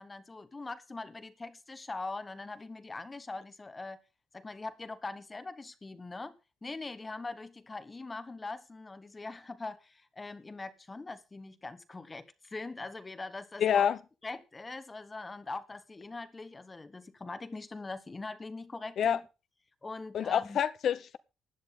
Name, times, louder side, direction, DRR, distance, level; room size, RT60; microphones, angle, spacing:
voice 1, 0.0-4.0 4.3-6.3 6.6-13.9 14.2-19.3 19.8-20.6, left 3 dB, 25° left, 1.3 m, -42 dB
voice 2, 13.6-14.0 19.0-19.2 20.1-21.2, left 8 dB, 65° left, 0.8 m, -27 dB
16.5 x 10.5 x 3.8 m
cardioid pair, 90°, 0 cm